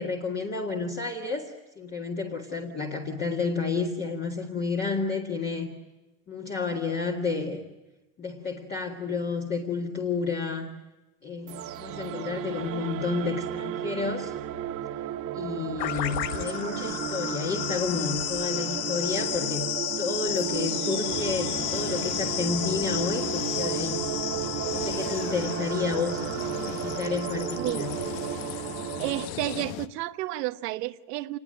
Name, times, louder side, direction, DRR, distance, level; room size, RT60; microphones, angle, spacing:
voice 1, 0.0-5.7 6.3-7.6 8.2-10.7 11.2-14.3 15.3-19.7 20.0-24.0 24.7-26.2 26.7-27.9, left 4 dB, 20° left, 1.9 m, -31 dB
sound 1, 11.5-29.2, right 11 dB, 30° right, 1.0 m, -34 dB
sound 2, 15.8-29.6, left 14 dB, 85° left, 1.3 m, -33 dB
sound 3, 21.1-29.9, left 12 dB, 35° left, 0.8 m, -39 dB
voice 2, 29.0-31.4, right 16 dB, 75° right, 1.2 m, -31 dB
27.5 x 20.5 x 8.9 m
supercardioid pair, 165°, 49 cm